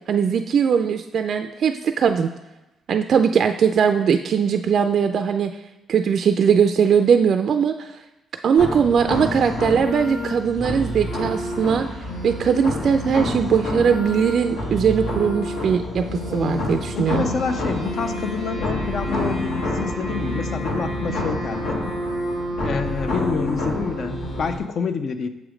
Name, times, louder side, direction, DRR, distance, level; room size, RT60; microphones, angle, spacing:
voice 1, 0.1-2.3 2.9-5.5 5.9-7.9 8.4-11.9 12.2-16.0 16.3-17.2, right 7 dB, 60° right, 7 dB, 0.3 m, -20 dB
sound 1, 8.6-24.6, left 1 dB, 80° left, 1.5 m, -27 dB
voice 2, 16.3-16.7 17.0-21.8 22.6-25.3, left 5 dB, 55° left, 9 dB, 0.5 m, -28 dB
6.9 x 3.1 x 5.0 m, 1.0 s
cardioid pair, 90°, 0 cm